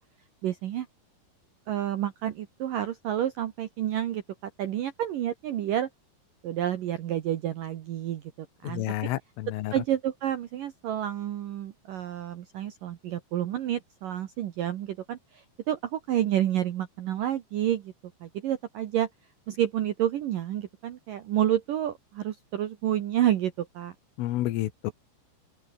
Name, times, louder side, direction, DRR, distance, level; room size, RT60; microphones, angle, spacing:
voice 1, 0.4-0.9 1.7-5.9 6.4-8.9 9.7-17.9 18.2-19.1 19.5-23.9, right 11 dB, 75° right, 2.0 m, -29 dB
voice 2, 8.6-9.7 24.2-24.9, left 15 dB, 85° left, 4.0 m, -30 dB
open air
omnidirectional pair, 5.7 m